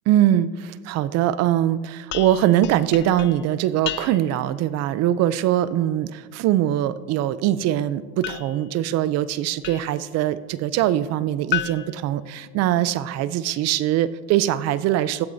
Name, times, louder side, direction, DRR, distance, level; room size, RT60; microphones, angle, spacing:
voice 1, 0.1-15.3, right 12 dB, 50° right, 16 dB, 0.5 m, -22 dB
sound 1, 2.1-4.5 8.2-10.1 11.5-13.0, left 13 dB, 35° left, 0.4 m, -34 dB
16.0 x 12.0 x 2.7 m, 1.5 s
supercardioid pair, 125°, 33 cm